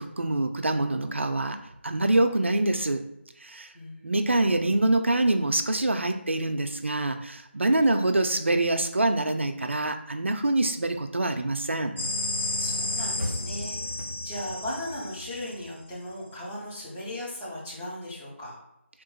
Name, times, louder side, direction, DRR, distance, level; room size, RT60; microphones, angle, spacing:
voice 1, 0.0-1.6 1.8-3.0 3.4-3.7 4.0-11.9, right 2 dB, 65° right, 7 dB, 0.5 m, -25 dB
voice 2, 3.7-4.6 12.6-13.8 14.2-18.6, left 1 dB, 5° left, -8 dB, 0.4 m, -37 dB
sound 1, 12.0-15.7, left 2 dB, 65° left, 0.9 m, -31 dB
3.8 x 2.5 x 3.8 m, 0.86 s
figure-of-eight pair, 165°, 7 cm